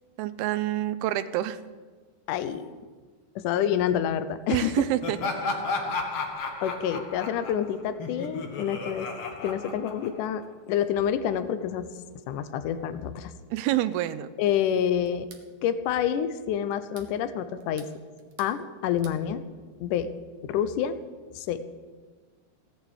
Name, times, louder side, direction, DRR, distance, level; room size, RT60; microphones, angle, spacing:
voice 1, 0.2-1.6 4.5-5.2 13.5-14.3, right 14 dB, 85° right, 13 dB, 2.7 m, -27 dB
voice 2, 2.3-2.7 3.4-4.9 6.6-9.1 9.4-11.9 12.3-13.3 14.4-15.3 15.6-17.9 18.4-19.4 19.8-20.1 20.4-21.0 21.3-21.6, left 9 dB, 75° left, 11 dB, 1.9 m, -28 dB
Laughter, 5.0-10.5, left 3 dB, 50° left, 2.1 m, -33 dB
sound 1, 15.1-15.5 16.7-17.1 17.6-18.6 18.8-19.2, right 6 dB, 60° right, 2.6 m, -51 dB
17.5 x 9.0 x 8.3 m, 1.4 s
omnidirectional pair, 4.5 m